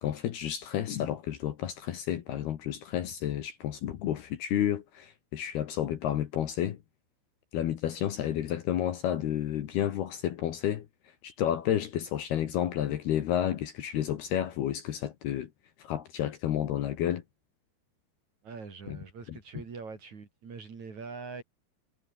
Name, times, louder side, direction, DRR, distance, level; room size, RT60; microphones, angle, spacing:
voice 1, 0.0-6.8 7.5-10.9 11.2-15.5 15.8-17.2 18.9-19.0 19.3-19.4, left 11 dB, 65° left, 3.1 m, -31 dB
voice 2, 18.4-21.4, right 4 dB, 40° right, 4.4 m, -43 dB
omnidirectional pair, 5.7 m